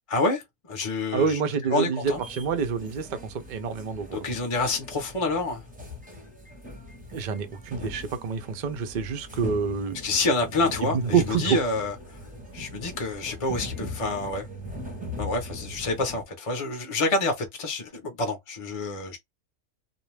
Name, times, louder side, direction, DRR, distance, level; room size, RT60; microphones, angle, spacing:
voice 1, 0.1-0.4 0.7-1.4 1.7-2.2 4.1-5.6 10.0-11.9 12.5-14.5 15.2-19.2, left 3 dB, 35° left, 0.5 m, -27 dB
voice 2, 1.1-4.3 7.1-10.0 10.8-11.6, right 6 dB, 60° right, 0.5 m, -27 dB
sound 1, 2.0-16.2, left 1 dB, 10° right, 0.6 m, -40 dB
2.5 x 2.2 x 3.2 m
omnidirectional pair, 1.6 m